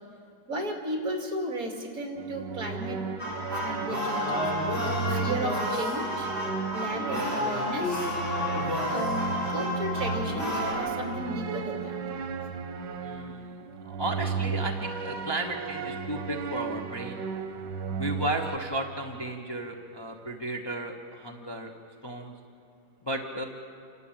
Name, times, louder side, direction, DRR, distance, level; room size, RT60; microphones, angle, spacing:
voice 1, 0.5-3.0 3.5-4.5 5.1-6.3 6.7-8.2 8.9-12.0, right 1 dB, 55° right, 2 dB, 2.9 m, -34 dB
sound 1, 2.2-18.6, right 5 dB, 85° right, 1.7 m, -34 dB
sound 2, 3.2-10.7, left 1 dB, 35° left, 5.5 m, -30 dB
voice 2, 13.0-13.6 13.8-17.2 18.0-21.7 22.0-22.3 23.0-23.4, right 1 dB, 15° left, 1 dB, 1.0 m, -34 dB
28.5 x 12.5 x 8.9 m, 2.3 s
omnidirectional pair, 1.8 m